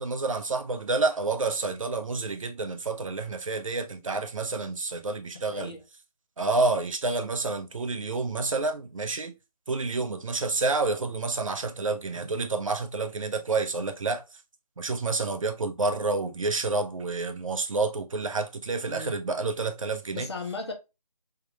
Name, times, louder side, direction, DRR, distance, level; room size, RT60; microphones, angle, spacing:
voice 1, 0.0-5.8 6.4-9.3 9.7-14.2 14.8-20.3, right 3 dB, 55° right, 0.6 m, -29 dB
voice 2, 5.5-5.8 18.9-19.1 20.1-20.7, left 3 dB, 40° left, 0.8 m, -36 dB
3.6 x 2.9 x 2.2 m
figure-of-eight pair, 150°, 21 cm